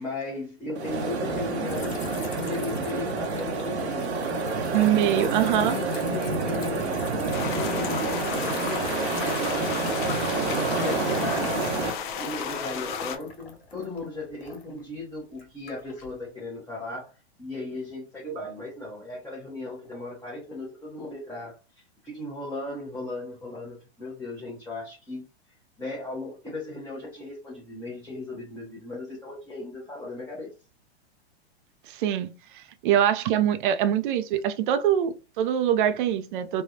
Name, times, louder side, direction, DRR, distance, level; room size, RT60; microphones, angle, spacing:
voice 1, 0.0-4.2 4.7-7.1 7.5-11.7 12.2-17.1 17.4-21.6 22.0-30.5, left 2 dB, 10° left, 0.8 m, -37 dB
sound 1, 0.7-11.9, right 3 dB, 80° right, 0.8 m, -28 dB
sound 2, 1.6-12.0 12.3-14.8 15.3-16.1, left 2 dB, 65° left, 1.5 m, -42 dB
voice 2, 4.7-5.8 18.3-18.5 31.9-32.3 32.5-36.6, right 10 dB, 50° right, 0.5 m, -24 dB
sound 3, 7.3-13.2, left 6 dB, 50° left, 0.6 m, -33 dB
3.3 x 2.2 x 2.6 m
hypercardioid pair, 115°, 33 cm